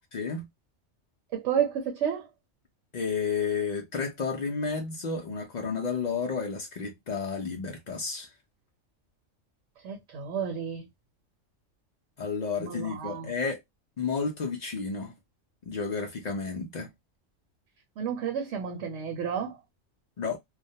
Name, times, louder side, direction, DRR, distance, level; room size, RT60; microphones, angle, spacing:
voice 1, 0.1-0.5 2.9-8.3 12.2-13.6 14.0-15.1 15.6-16.9 20.2-20.4, left 5 dB, 90° left, 0.3 m, -31 dB
voice 2, 1.3-2.2 9.8-10.8 12.6-13.3 18.0-19.6, right 8 dB, 70° right, 0.9 m, -31 dB
2.3 x 2.1 x 2.6 m
omnidirectional pair, 1.3 m